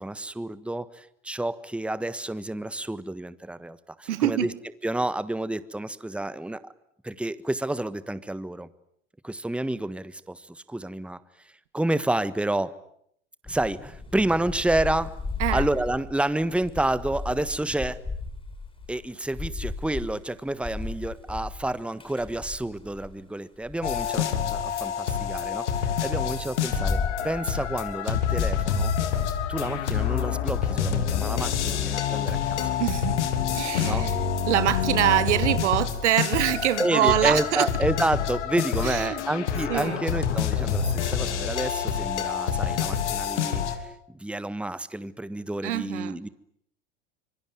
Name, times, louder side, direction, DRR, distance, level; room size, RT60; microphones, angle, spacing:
voice 1, 0.0-4.5 4.8-6.7 7.0-8.7 9.2-11.2 11.7-12.7 13.5-15.1 15.5-18.0 18.9-28.9 29.5-32.7 33.8-34.1 36.8-43.8 44.1-46.3, right 1 dB, 5° right, 1.4 m, -29 dB
voice 2, 4.1-4.5 15.4-15.7 32.8-33.2 33.5-37.7 38.8-39.2 39.7-40.0 45.6-46.2, right 13 dB, 75° right, 1.4 m, -25 dB
Thunder / Rain, 13.4-23.2 23.6-25.6 26.2-31.0, left 3 dB, 15° left, 6.8 m, -35 dB
sound 1, 23.8-43.8, left 8 dB, 80° left, 3.3 m, -27 dB
26.0 x 23.5 x 9.6 m
hypercardioid pair, 85°, 35 cm